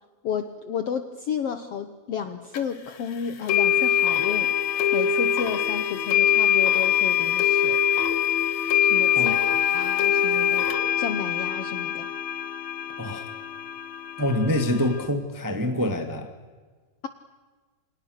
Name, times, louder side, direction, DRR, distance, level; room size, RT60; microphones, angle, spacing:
voice 1, 0.2-4.5 4.9-7.8 8.8-10.7 11.0-12.1, left 7 dB, 75° left, 10 dB, 1.4 m, -32 dB
sound 1, 2.5-2.6 3.5-15.1, left 9 dB, 55° left, 2.9 m, -23 dB
voice 2, 13.0-13.3 14.2-16.3, left 1 dB, 10° right, 6 dB, 1.2 m, -26 dB
29.0 x 27.0 x 6.6 m, 1.4 s
omnidirectional pair, 4.3 m